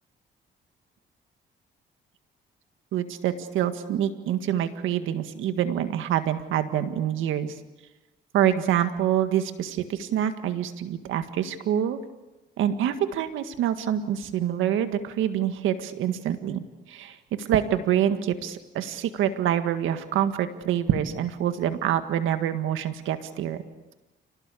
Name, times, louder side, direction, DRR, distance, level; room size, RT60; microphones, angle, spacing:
voice 1, 2.9-7.6 8.3-12.0 12.6-23.6, right 10 dB, 90° right, 9 dB, 1.8 m, -26 dB
29.0 x 18.5 x 8.4 m, 1.1 s
cardioid pair, 90°, 20 cm